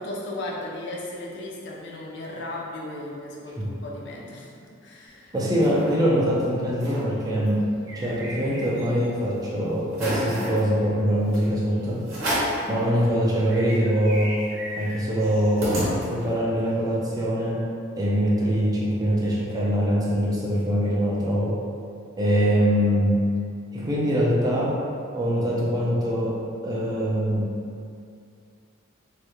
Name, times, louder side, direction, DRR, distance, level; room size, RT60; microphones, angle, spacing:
voice 1, 0.0-5.3, left 1 dB, 55° left, -3 dB, 0.4 m, -36 dB
sound 1, 5.1-6.0 6.4-6.5 6.7-7.1 7.5-9.0 9.4-9.5 9.9-10.6 11.3-11.5 12.1-12.6 13.1-13.2 13.4-16.4, equal, 90° right, 0.8 m, -31 dB
voice 2, 5.3-7.6 7.9-12.0 12.7-14.4 14.8-15.7 16.1-17.6 18.0-21.6 22.2-23.3 23.7-24.8 25.1-26.4 26.6-27.5, equal, 20° right, -5 dB, 0.3 m, -23 dB
2.3 x 2.1 x 2.9 m, 2.3 s
head